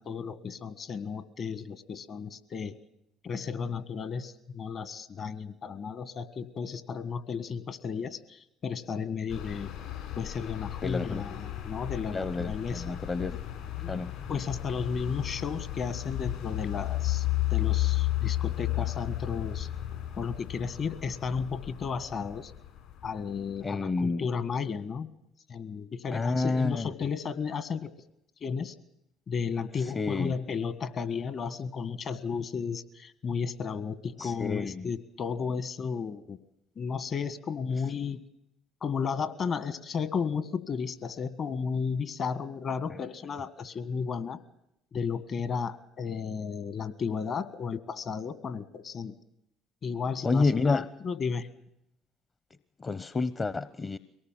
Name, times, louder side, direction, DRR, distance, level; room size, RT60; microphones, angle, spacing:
voice 1, 0.0-2.8 3.2-9.7 10.2-13.0 13.8-14.0 14.3-19.7 20.2-22.5 23.0-25.1 25.5-27.9 28.4-28.7 29.3-36.4 36.7-38.2 38.8-44.4 44.9-49.2 49.8-51.5, left 6 dB, 50° left, 14 dB, 1.6 m, -33 dB
sound 1, 9.3-23.7, left 15 dB, 70° left, 7.0 m, -33 dB
voice 2, 10.8-11.2 12.1-13.4 13.9-14.1 23.6-24.2 26.1-26.9 29.8-30.3 34.2-34.9 50.2-50.8 52.8-54.0, left 3 dB, 30° left, 15 dB, 0.9 m, -29 dB
23.0 x 18.5 x 7.6 m, 0.81 s
hypercardioid pair, 60°, 0 cm